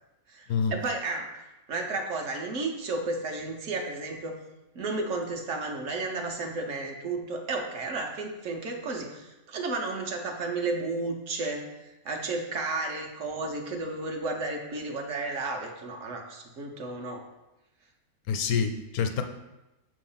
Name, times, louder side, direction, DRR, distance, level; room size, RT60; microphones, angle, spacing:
voice 1, 0.3-1.3 1.7-4.4 4.7-11.7 12.0-17.3, right 3 dB, 60° right, 2 dB, 1.1 m, -32 dB
voice 2, 18.3-19.2, left 6 dB, 75° left, 6 dB, 1.1 m, -27 dB
6.8 x 3.1 x 5.5 m, 0.99 s
omnidirectional pair, 1.6 m